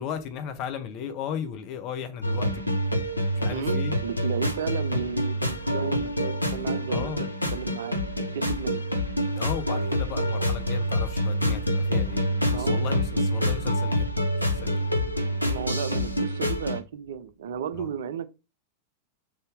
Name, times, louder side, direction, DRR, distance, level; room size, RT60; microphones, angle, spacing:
voice 1, 0.0-2.7 3.3-3.9 6.9-7.3 9.3-12.2 12.5-14.1 14.4-14.9 17.7-17.9, left 8 dB, 40° left, 0.8 m, -35 dB
sound 1, 2.2-16.8, equal, 85° left, 0.5 m, -27 dB
voice 2, 3.5-7.1 7.5-8.0 8.3-8.8 12.5-12.8 15.4-18.3, right 7 dB, 60° right, 0.4 m, -33 dB
3.6 x 2.7 x 3.5 m
figure-of-eight pair, 90°, 0 cm